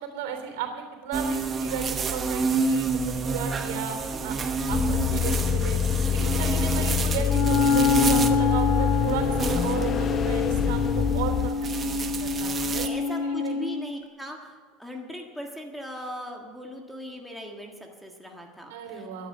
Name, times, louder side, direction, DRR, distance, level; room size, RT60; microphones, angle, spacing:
voice 1, 0.0-4.0 4.2-5.8 6.1-12.8 13.2-13.7 18.7-19.3, right 8 dB, 85° right, 6 dB, 3.4 m, -35 dB
sound 1, 1.1-12.9, right 4 dB, 20° right, 1.0 m, -30 dB
sound 2, 4.7-11.5, left 8 dB, 30° left, 0.3 m, -26 dB
Wind instrument woodwind instrument, 7.2-13.9, left 4 dB, 55° left, 2.0 m, -26 dB
voice 2, 12.7-19.1, equal, ahead, 0 dB, 1.6 m, -39 dB
14.0 x 10.5 x 8.1 m, 1.4 s
supercardioid pair, 150°, 0 cm